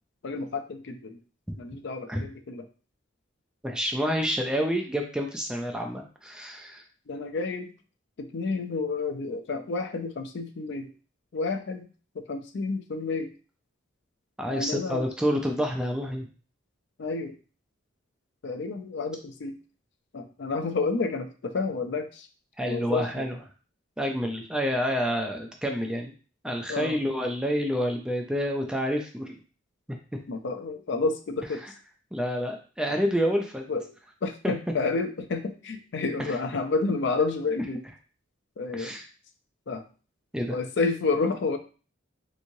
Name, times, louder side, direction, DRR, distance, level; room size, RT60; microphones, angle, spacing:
voice 1, 0.2-1.2 1.6-2.6 7.1-7.7 8.2-10.9 11.3-11.9 12.1-13.3 14.5-15.1 17.0-17.4 18.4-19.6 20.1-22.3 22.6-23.3 26.7-27.0 30.3-31.7 33.7-37.8 38.6-39.0 39.7-39.8 40.5-41.6, left 3 dB, 60° left, 6 dB, 0.4 m, -30 dB
voice 2, 3.6-6.8 14.4-16.3 22.6-23.4 24.0-26.1 26.4-29.3 31.6-31.7 32.1-33.6 34.4-34.5 36.3-36.4 38.7-39.0 40.3-40.6, equal, 5° right, 2 dB, 0.3 m, -28 dB
3.4 x 3.1 x 2.6 m, 0.37 s
head